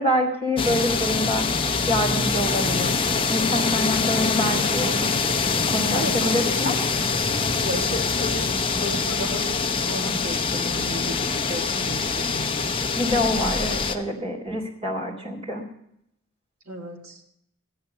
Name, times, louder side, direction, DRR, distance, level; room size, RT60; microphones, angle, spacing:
voice 1, 0.0-1.5 1.9-3.0 3.3-5.1 5.7-6.8 12.9-15.6, left 1 dB, 25° right, -1 dB, 3.2 m, -26 dB
sound 1, 0.6-14.0, left 4 dB, 25° left, 0.8 m, -24 dB
voice 2, 5.9-6.7 7.6-12.6 16.7-17.2, equal, 70° right, 1 dB, 1.8 m, -34 dB
13.5 x 9.9 x 6.7 m, 0.76 s
head